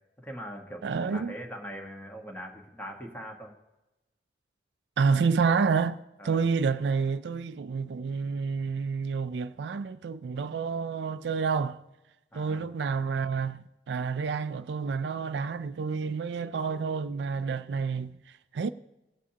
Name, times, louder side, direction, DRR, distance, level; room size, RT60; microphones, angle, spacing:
voice 1, 0.2-3.5 6.2-6.4 12.3-12.6, equal, 10° left, 1.3 m, -41 dB
voice 2, 0.8-1.3 5.0-6.0 6.2-11.8 12.3-18.7, right 5 dB, 75° right, 0.4 m, -29 dB
17.5 x 7.3 x 2.9 m
head